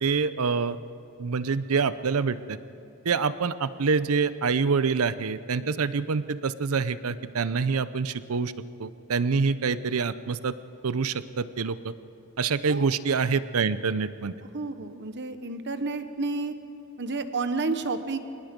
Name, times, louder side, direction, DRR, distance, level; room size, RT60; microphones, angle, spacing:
voice 1, 0.0-0.8 1.2-2.6 3.0-8.5 8.8-10.5 10.8-11.9 12.4-14.3, right 5 dB, 80° right, 14 dB, 0.6 m, -26 dB
voice 2, 14.5-16.5 17.0-18.2, right 3 dB, 55° right, 10 dB, 1.1 m, -30 dB
26.5 x 19.5 x 5.2 m, 2.7 s
head